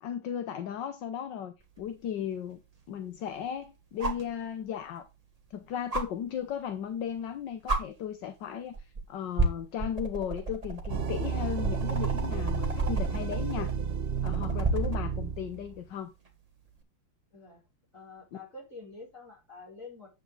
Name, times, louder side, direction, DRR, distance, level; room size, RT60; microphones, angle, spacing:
voice 1, 0.0-2.6 2.9-5.1 5.5-13.7 14.2-16.1, left 9 dB, 65° left, 1.5 m, -36 dB
sound 1, 1.8-1.9 4.0-4.3 5.9-6.0 7.2-7.3 7.7-7.8 8.7-9.0 9.4-15.0 16.7-16.8, right 3 dB, 20° right, 1.5 m, -31 dB
sound 2, 10.9-15.8, right 6 dB, 75° right, 0.5 m, -31 dB
voice 2, 17.3-17.6 17.9-20.1, left 3 dB, 40° left, 6.0 m, -47 dB
9.2 x 8.1 x 3.9 m
omnidirectional pair, 2.2 m